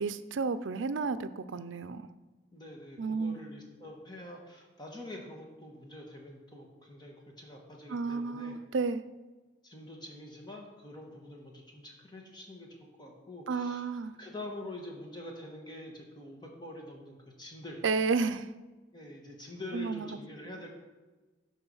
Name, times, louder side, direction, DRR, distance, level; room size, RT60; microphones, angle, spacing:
voice 1, 0.0-2.1 3.0-3.4 7.9-9.0 13.5-14.1 17.8-18.5 19.7-20.2, right 4 dB, 85° right, 12 dB, 0.5 m, -32 dB
voice 2, 2.5-8.6 9.6-13.8 14.2-17.8 18.9-20.7, left 1 dB, 20° left, 0 dB, 1.6 m, -45 dB
12.5 x 4.7 x 5.5 m, 1.2 s
head